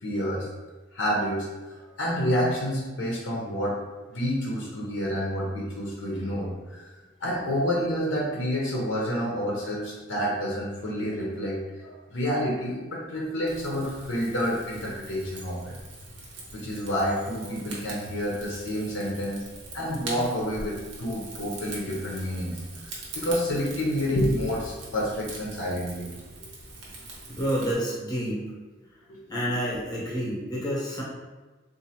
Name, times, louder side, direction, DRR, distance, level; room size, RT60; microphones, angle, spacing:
voice 1, 0.0-0.5 0.9-3.8 4.1-6.8 7.2-15.7 16.5-19.4 19.7-26.1 29.1-29.2, equal, 80° left, -4 dB, 0.7 m, -29 dB
Rain / Fire, 13.5-27.7, right 2 dB, 75° right, 0.9 m, -42 dB
voice 2, 27.3-28.4 29.3-31.0, equal, 20° left, -5 dB, 0.9 m, -29 dB
3.9 x 2.6 x 2.8 m, 1.2 s
head